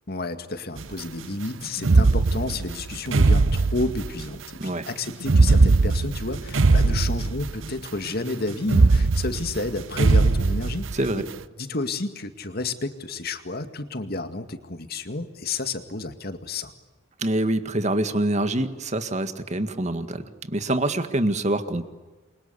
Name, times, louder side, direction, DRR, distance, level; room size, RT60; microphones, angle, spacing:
voice 1, 0.1-10.9 11.6-16.7, left 2 dB, 50° left, 8 dB, 2.2 m, -31 dB
sound 1, 0.8-0.9 1.8-4.4 5.2-7.8 8.1-8.2 8.6-11.2, right 3 dB, 75° right, 0.8 m, -20 dB
voice 2, 10.9-11.3 17.2-21.9, right 1 dB, 35° right, 10 dB, 1.8 m, -25 dB
29.0 x 24.0 x 8.4 m, 1.2 s
head